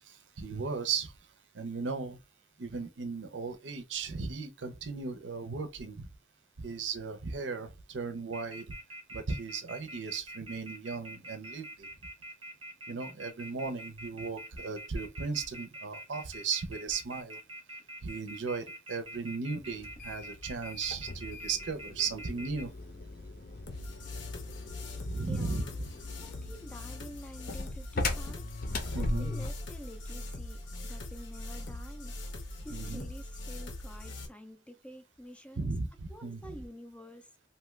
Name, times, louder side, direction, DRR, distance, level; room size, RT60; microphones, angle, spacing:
voice 1, 0.0-1.1 1.5-2.2 2.6-6.1 6.6-8.7 9.1-11.9 12.9-17.4 18.0-22.7 25.0-25.6 28.9-29.3 32.7-33.1 35.6-36.5, right 4 dB, 80° right, 0.6 m, -36 dB
Telephone, 8.3-22.6, right 1 dB, 30° right, 0.6 m, -45 dB
sound 1, 19.8-29.7, left 2 dB, 50° left, 0.6 m, -39 dB
sound 2, 23.7-34.3, left 2 dB, 85° left, 0.7 m, -42 dB
voice 2, 25.3-25.8 26.2-32.2 32.4-35.7 36.1-37.3, equal, 5° left, 0.3 m, -49 dB
2.8 x 2.3 x 3.1 m
head